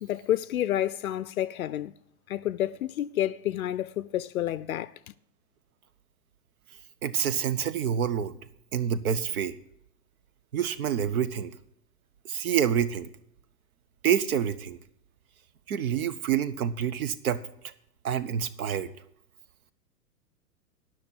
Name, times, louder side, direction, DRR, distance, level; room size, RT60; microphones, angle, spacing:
voice 1, 0.0-1.9 2.3-4.9, left 12 dB, 60° left, 0.5 m, -29 dB
voice 2, 7.0-8.3 8.7-9.5 10.5-11.5 12.3-13.1 14.0-14.8 15.7-17.4 18.0-18.9, right 8 dB, 60° right, 1.0 m, -27 dB
10.0 x 6.2 x 8.2 m
hypercardioid pair, 125°, 49 cm